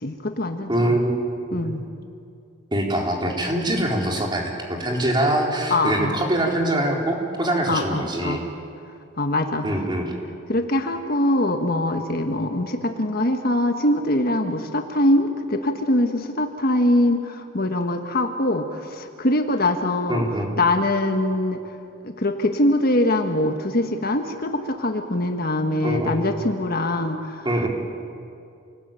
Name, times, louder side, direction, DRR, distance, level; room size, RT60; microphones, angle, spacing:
voice 1, 0.0-1.0 1.5-1.8 5.7-6.2 7.7-8.4 9.2-9.6 10.5-20.2 20.6-21.6 22.0-27.5, left 1 dB, 50° left, 6 dB, 1.5 m, -23 dB
voice 2, 0.7-1.2 1.5-1.7 2.7-8.4 9.6-10.1 20.1-20.5 25.8-26.2 27.4-27.7, right 1 dB, 20° right, 0 dB, 4.1 m, -23 dB
28.5 x 19.5 x 9.1 m, 2.5 s
head